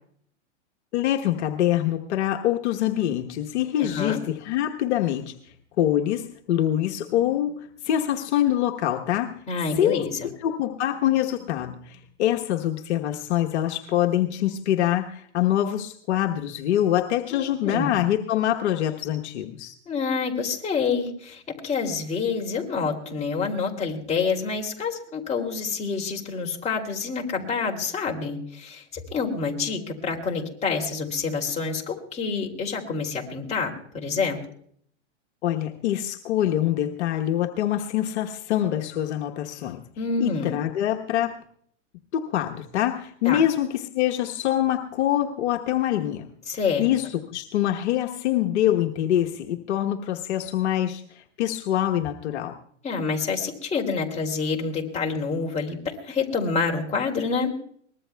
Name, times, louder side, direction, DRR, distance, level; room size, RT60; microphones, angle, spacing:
voice 1, 0.9-5.3 5.8-9.3 9.8-19.8 35.4-39.8 40.2-41.3 42.1-46.3 46.8-52.6, left 12 dB, 65° left, 3 dB, 1.2 m, -25 dB
voice 2, 3.8-4.2 9.5-10.1 17.3-18.0 19.9-34.4 40.0-40.6 43.2-43.4 46.5-46.9 52.8-57.5, left 5 dB, 20° left, 0 dB, 2.8 m, -27 dB
23.0 x 20.0 x 2.3 m, 0.62 s
hypercardioid pair, 125°, 36 cm